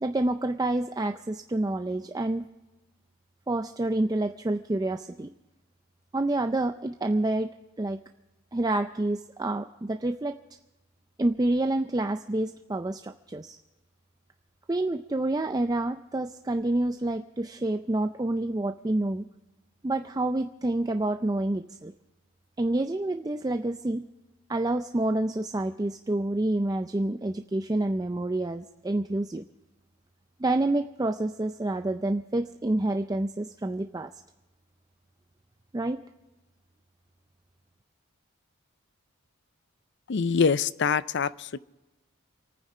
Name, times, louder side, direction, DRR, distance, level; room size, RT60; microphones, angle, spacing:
voice 1, 0.0-2.5 3.5-5.3 6.1-8.0 8.5-10.3 11.2-13.6 14.7-19.3 19.8-21.9 22.6-24.0 24.5-29.4 30.4-34.1 35.7-36.0, right 2 dB, 15° right, 7 dB, 0.4 m, -28 dB
voice 2, 40.1-41.6, left 5 dB, 55° left, 17 dB, 0.5 m, -25 dB
27.5 x 9.6 x 4.9 m, 1.1 s
head